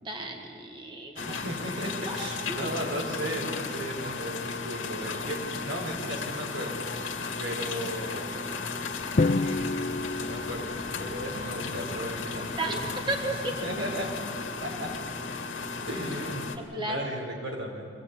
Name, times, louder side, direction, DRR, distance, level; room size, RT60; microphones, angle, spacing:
voice 1, 0.0-1.4 2.1-2.7 12.6-12.8 13.1-13.6 16.6-17.1, right 2 dB, 25° right, 2 dB, 1.5 m, -34 dB
sound 1, 1.1-16.6, left 4 dB, 85° left, 2.1 m, -35 dB
voice 2, 1.2-6.9 7.4-8.4 9.3-9.7 10.1-13.0 13.6-14.1 14.6-14.9 15.9-17.9, equal, 85° right, 0 dB, 4.7 m, -36 dB
Drum, 9.2-11.3, left 3 dB, 40° left, 0.4 m, -28 dB
24.0 x 17.0 x 8.4 m, 2.6 s
head